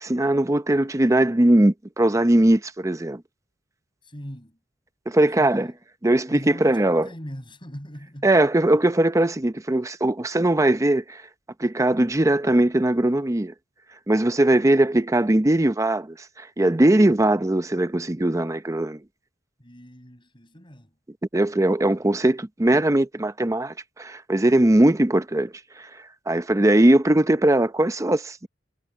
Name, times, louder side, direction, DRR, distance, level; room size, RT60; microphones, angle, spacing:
voice 1, 0.0-3.2 5.1-5.7 6.0-7.1 8.2-11.2 11.6-13.5 14.1-19.0 21.3-25.5 26.3-28.5, right 1 dB, 15° right, 0.6 m, -20 dB
voice 2, 4.0-4.6 5.4-5.8 6.3-8.4 19.6-20.9, equal, 25° left, 7.4 m, -41 dB
head